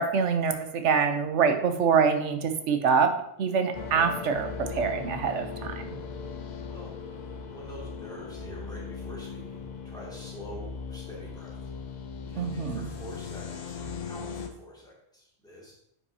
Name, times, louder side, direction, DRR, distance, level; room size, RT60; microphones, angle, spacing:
voice 1, 0.0-3.1 3.4-5.8 12.3-12.9, right 6 dB, 90° right, 7 dB, 1.1 m, -25 dB
sound 1, 3.7-14.5, left 5 dB, 50° left, 0.7 m, -38 dB
voice 2, 6.6-6.9 7.5-11.5 12.3-15.7, equal, 5° left, -6 dB, 2.4 m, -46 dB
9.3 x 5.6 x 2.8 m, 0.76 s
omnidirectional pair, 1.2 m